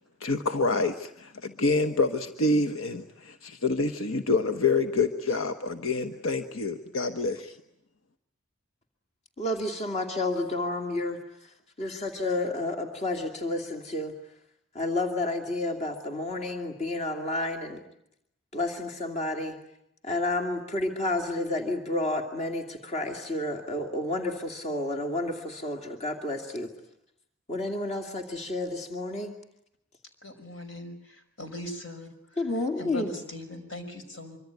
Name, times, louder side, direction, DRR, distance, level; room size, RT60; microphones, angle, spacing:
voice 1, 0.2-7.6, left 3 dB, 90° left, 8 dB, 1.2 m, -27 dB
voice 2, 9.4-11.2 11.8-14.1 14.7-17.8 18.5-19.6 20.0-26.7 27.5-29.3 32.4-33.2, left 2 dB, 35° left, 4 dB, 2.6 m, -30 dB
voice 3, 30.2-32.1 32.8-34.4, left 1 dB, 65° left, 6 dB, 5.7 m, -40 dB
25.0 x 25.0 x 9.3 m, 0.76 s
head